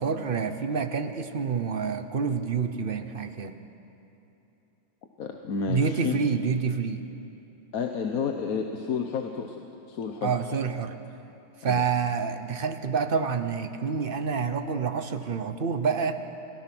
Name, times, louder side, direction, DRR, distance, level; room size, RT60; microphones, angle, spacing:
voice 1, 0.0-3.6 5.7-7.0 10.2-11.0 11.6-16.2, right 5 dB, 40° right, 8 dB, 0.8 m, -28 dB
voice 2, 5.2-6.2 7.7-10.3 11.6-11.8, left 6 dB, 55° left, 4 dB, 1.3 m, -31 dB
27.5 x 17.0 x 6.1 m, 3.0 s
omnidirectional pair, 1.9 m